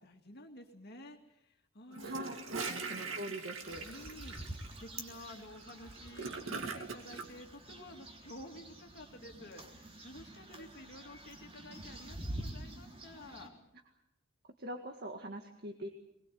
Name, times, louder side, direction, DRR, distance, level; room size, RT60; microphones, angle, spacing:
voice 1, 0.0-2.3 2.6-3.1 3.8-13.5, left 1 dB, 55° left, 3 dB, 2.3 m, -52 dB
Gurgling / Toilet flush, 1.9-7.3, right 4 dB, 75° right, 2.5 m, -42 dB
voice 2, 2.0-3.9 14.6-15.9, right 1 dB, 50° right, 4 dB, 1.9 m, -43 dB
sound 1, 3.5-13.5, right 1 dB, 30° right, 3.6 m, -47 dB
23.5 x 21.0 x 7.7 m, 0.80 s
head